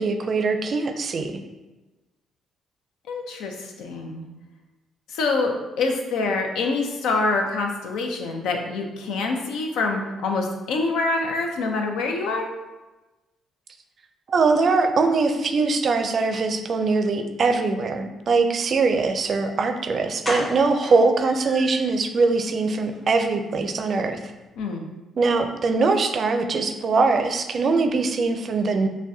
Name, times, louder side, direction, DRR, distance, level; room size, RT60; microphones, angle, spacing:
voice 1, 0.0-1.4 14.3-24.2 25.2-28.9, right 4 dB, 50° right, 6 dB, 0.4 m, -22 dB
voice 2, 3.1-4.3 5.1-12.5 24.6-24.9, left 3 dB, 90° left, 3 dB, 0.5 m, -26 dB
sound 1, 19.6-19.7 20.2-22.0 22.4-22.5 22.8-23.0 23.2-23.3, equal, 25° left, 1.5 m, -33 dB
5.9 x 2.2 x 2.7 m, 1.1 s
cardioid pair, 90°, 0 cm